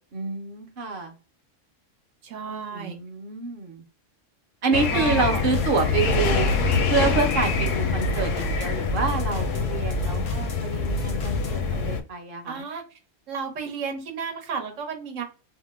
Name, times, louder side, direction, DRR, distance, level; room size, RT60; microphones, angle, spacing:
voice 1, 0.1-1.1 2.5-3.8 4.6-6.5 6.9-12.7, right 4 dB, 55° right, 4 dB, 0.7 m, -28 dB
voice 2, 2.2-3.0 4.7-5.4 12.5-12.8 13.3-15.2, right 5 dB, 85° right, 3 dB, 1.2 m, -33 dB
sound 1, 4.7-12.0, left 5 dB, 80° left, 1.0 m, -25 dB
sound 2, 5.1-11.6, right 4 dB, 50° left, 0.5 m, -32 dB
2.7 x 2.0 x 3.3 m, 0.36 s
omnidirectional pair, 1.3 m